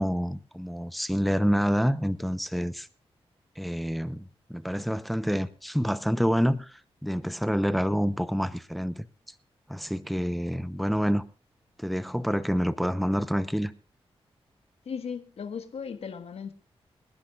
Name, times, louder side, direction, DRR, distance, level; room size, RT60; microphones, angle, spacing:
voice 1, 0.0-2.9 3.6-9.1 9.7-11.2 11.8-13.7, equal, ahead, 14 dB, 0.8 m, -27 dB
voice 2, 14.8-16.5, left 6 dB, 75° left, 8 dB, 1.5 m, -36 dB
25.0 x 10.5 x 2.5 m, 0.35 s
cardioid pair, 75°, 10 cm